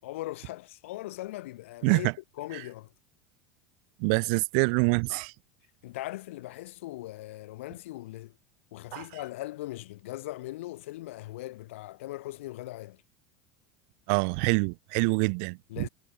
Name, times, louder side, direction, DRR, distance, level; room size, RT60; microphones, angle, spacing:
voice 1, 0.0-2.1 2.4-2.9 5.8-8.3 8.7-13.0 15.7-15.9, left 17 dB, 85° left, 6.0 m, -39 dB
voice 2, 1.8-2.1 2.5-2.6 4.0-5.3 8.9-9.1 14.1-15.9, right 39 dB, 50° right, 1.1 m, -26 dB
supercardioid pair, 175°, 7 cm